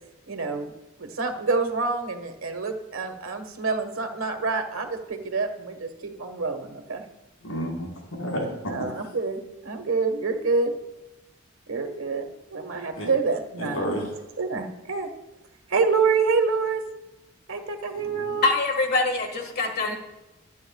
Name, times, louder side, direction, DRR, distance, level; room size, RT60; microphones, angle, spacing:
voice 1, 0.3-0.7 1.0-7.0 8.7-10.7 11.7-13.8 14.4-15.1 15.7-16.8 17.5-18.5, right 4 dB, 75° right, 6 dB, 1.5 m, -27 dB
voice 2, 7.4-8.9 13.0-13.1 13.6-14.1, equal, 80° left, -1 dB, 4.6 m, -30 dB
voice 3, 17.9-20.0, left 3 dB, 50° left, 4 dB, 1.8 m, -25 dB
23.0 x 9.4 x 2.4 m, 1.0 s
head